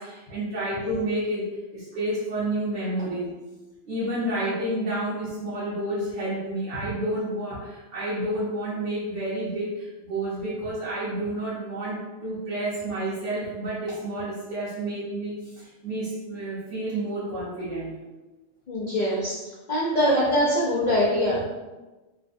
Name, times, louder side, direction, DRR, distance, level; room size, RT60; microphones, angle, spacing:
voice 1, 0.0-3.3 3.8-18.0, right 1 dB, 60° right, -10 dB, 1.1 m, -30 dB
voice 2, 18.7-19.4 19.7-21.4, equal, 85° left, -7 dB, 0.4 m, -23 dB
3.3 x 2.1 x 2.5 m, 1.1 s
omnidirectional pair, 1.5 m